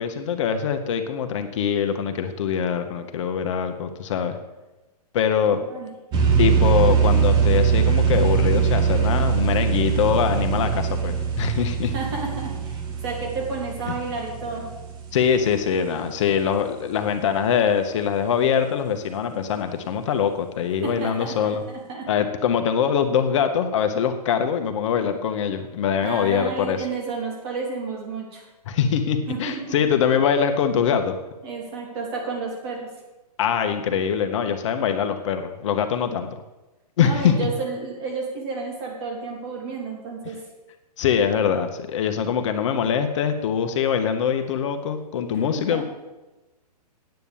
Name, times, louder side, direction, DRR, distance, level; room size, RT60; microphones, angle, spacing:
voice 1, 0.0-4.4 5.1-5.6 6.4-11.9 13.9-14.0 15.1-21.6 22.1-26.8 28.7-31.1 33.4-36.3 37.0-37.5 41.0-45.8, left 7 dB, 50° left, 7 dB, 1.1 m, -23 dB
voice 2, 5.5-5.9 11.9-14.7 20.8-22.1 26.0-28.4 29.3-29.8 31.4-32.9 37.0-40.4 45.3-45.8, right 4 dB, 40° right, 0 dB, 3.4 m, -31 dB
sound 1, 6.1-15.6, right 7 dB, 20° right, 1.2 m, -22 dB
9.2 x 8.2 x 7.3 m, 1.1 s
hypercardioid pair, 150°, 21 cm